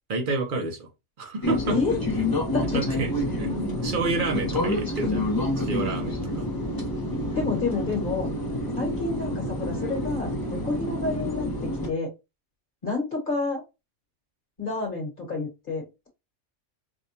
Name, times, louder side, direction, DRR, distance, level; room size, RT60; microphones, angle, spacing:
voice 1, 0.1-0.9 1.2-1.8 2.6-3.1 3.4-5.3 5.6-6.5, right 3 dB, 50° right, 0.7 m, -29 dB
sound 1, 1.4-11.9, left 1 dB, 25° left, 0.6 m, -28 dB
voice 2, 1.7-2.0 2.5-2.8 7.3-8.3 8.7-12.1 12.8-13.6 14.6-16.1, left 3 dB, 45° left, 1.3 m, -29 dB
4.8 x 2.2 x 2.7 m
omnidirectional pair, 1.3 m